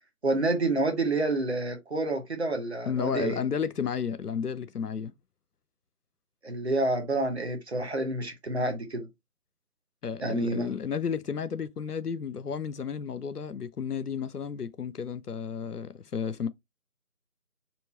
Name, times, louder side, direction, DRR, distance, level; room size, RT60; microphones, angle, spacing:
voice 1, 0.2-3.4 6.4-9.1 10.2-10.7, right 2 dB, 45° right, 1.1 m, -28 dB
voice 2, 2.9-5.1 10.0-16.5, left 7 dB, 80° left, 0.7 m, -32 dB
4.5 x 2.7 x 4.1 m
figure-of-eight pair, 165°, 45 cm